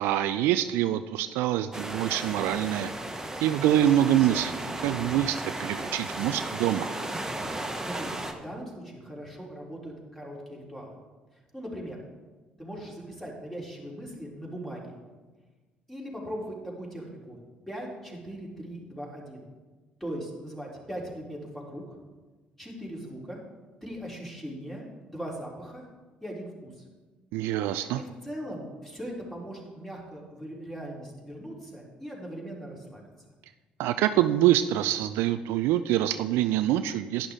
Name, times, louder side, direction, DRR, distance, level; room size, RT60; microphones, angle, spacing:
voice 1, 0.0-2.9 3.4-6.9 27.3-28.0 33.8-37.3, right 12 dB, 65° right, 12 dB, 0.3 m, -25 dB
sound 1, 1.7-8.3, right 1 dB, 10° right, 1.4 m, -35 dB
voice 2, 7.8-11.0 11.5-12.0 12.6-15.0 15.9-17.4 17.7-19.4 20.0-22.0 22.6-23.4 23.8-24.8 25.1-25.8 26.2-26.7 27.9-33.0, equal, 5° left, -3 dB, 3.5 m, -39 dB
11.0 x 10.0 x 3.7 m, 1.3 s
hypercardioid pair, 50°, 4 cm